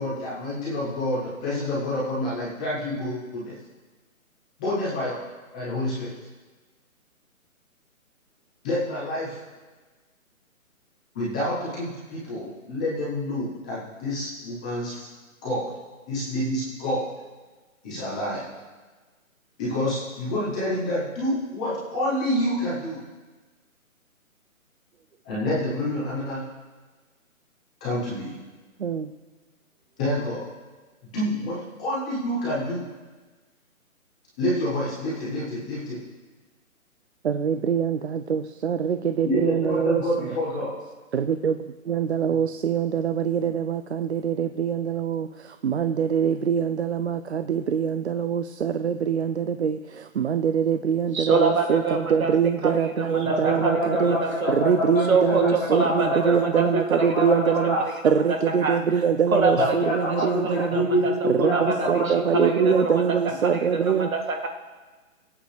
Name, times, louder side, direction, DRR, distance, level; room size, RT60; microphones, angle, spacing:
voice 1, 0.0-3.6 4.6-5.2 5.5-6.1 8.6-9.4 11.1-15.1 15.4-15.7 16.1-17.1 17.8-18.5 19.6-23.0 25.2-26.4 27.8-28.4 30.0-30.4 31.1-32.8 34.4-36.0 39.2-40.8 53.2-56.6 56.9-57.9 59.6-63.1, left 1 dB, 5° left, -9 dB, 0.7 m, -27 dB
voice 2, 37.2-40.0 41.1-54.2 54.5-57.8 58.0-60.9 61.2-64.1, right 7 dB, 55° right, 10 dB, 0.5 m, -24 dB
voice 3, 51.1-52.3 52.6-54.6 55.1-57.5 57.8-57.9 58.3-59.0 59.3-59.5 60.4-64.5, right 3 dB, 75° right, 3 dB, 2.0 m, -26 dB
23.0 x 8.5 x 3.3 m, 1.3 s
hypercardioid pair, 165°, 42 cm